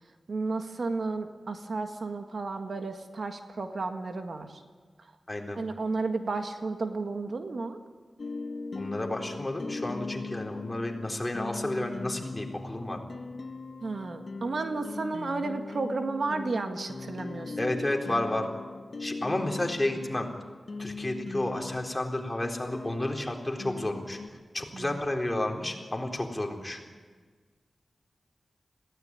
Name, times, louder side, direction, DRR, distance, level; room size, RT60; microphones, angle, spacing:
voice 1, 0.3-4.6 5.6-7.8 13.8-17.7 24.7-24.9, right 3 dB, 65° right, 6 dB, 1.7 m, -33 dB
voice 2, 5.3-5.6 8.7-13.0 17.6-18.5 19.0-20.3 20.8-24.2 24.5-26.8, left 1 dB, 20° left, 1 dB, 3.9 m, -31 dB
sound 1, 8.2-24.3, left 3 dB, 60° left, 1.2 m, -39 dB
21.5 x 17.0 x 9.8 m, 1.5 s
cardioid pair, 65°, 0 cm